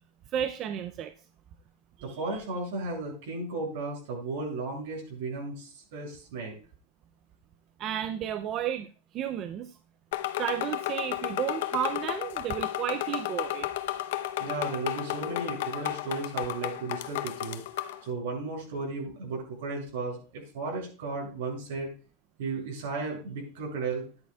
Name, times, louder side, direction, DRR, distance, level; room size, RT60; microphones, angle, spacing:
voice 1, 0.3-1.1 2.0-2.4 7.8-8.9 9.1-9.8 10.4-13.7, right 10 dB, 30° right, 10 dB, 0.4 m, -32 dB
voice 2, 2.0-6.6 14.4-17.6 18.0-21.9 22.4-24.0, right 3 dB, 70° right, 0 dB, 6.6 m, -34 dB
sound 1, 10.1-18.0, left 14 dB, 70° left, 0.7 m, -33 dB
13.5 x 10.5 x 2.3 m, 0.37 s
supercardioid pair, 165°, 0 cm